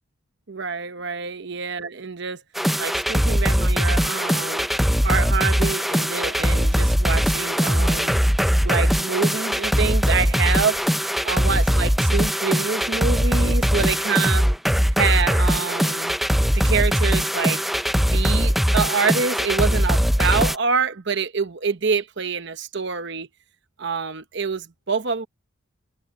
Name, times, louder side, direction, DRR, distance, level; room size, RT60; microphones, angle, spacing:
voice 1, 0.5-2.4 2.8-4.7 5.0-8.2 8.6-10.9 11.2-14.4 15.0-16.2 16.5-17.6 18.0-23.3 23.8-25.3, right 5 dB, 55° right, 0.9 m, -26 dB
sound 1, 2.5-20.6, equal, ahead, 0.4 m, -21 dB
head